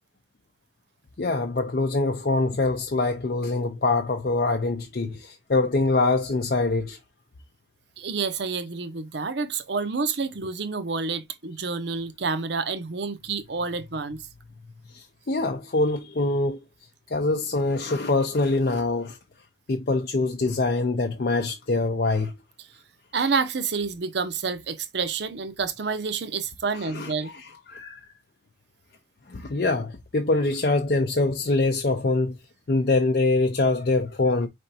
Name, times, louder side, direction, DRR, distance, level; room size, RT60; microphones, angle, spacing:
voice 1, 1.2-7.0 14.9-16.6 17.1-19.2 19.7-22.3 26.7-28.0 29.3-32.3 32.7-34.5, left 3 dB, 50° left, 0.5 m, -24 dB
voice 2, 8.0-14.2 23.1-27.3, right 4 dB, 60° right, 0.6 m, -28 dB
4.9 x 3.4 x 2.7 m
head